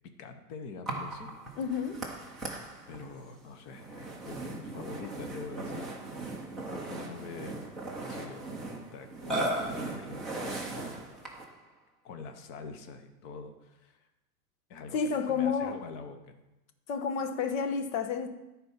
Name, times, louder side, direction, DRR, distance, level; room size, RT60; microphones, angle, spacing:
voice 1, 0.2-1.3 2.9-5.8 6.7-7.6 8.0-8.4 8.9-11.1 12.0-14.1 14.7-16.3, left 4 dB, 35° left, 1.0 m, -45 dB
Burping eructation, 0.9-11.6, right 2 dB, ahead, 0.3 m, -38 dB
voice 2, 1.6-2.0 14.9-15.8 16.9-18.3, left 6 dB, 60° left, 1.2 m, -30 dB
13.0 x 4.4 x 5.7 m
hypercardioid pair, 135°, 48 cm